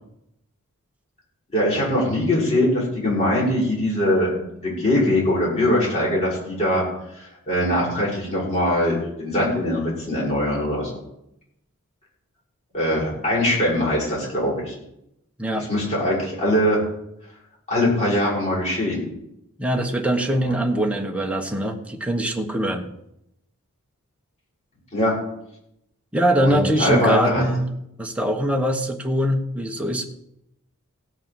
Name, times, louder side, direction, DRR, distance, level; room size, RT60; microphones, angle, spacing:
voice 1, 1.5-4.3 4.6-6.8 7.1-11.0 12.7-14.8 15.6-16.8 17.7-19.0 20.5-20.6 24.9-25.1 26.4-27.4, left 1 dB, 30° left, -5 dB, 7.0 m, -22 dB
voice 2, 19.6-22.9 26.1-27.7 28.0-30.1, right 1 dB, 5° right, 3 dB, 1.2 m, -22 dB
17.0 x 6.6 x 7.4 m, 0.80 s
head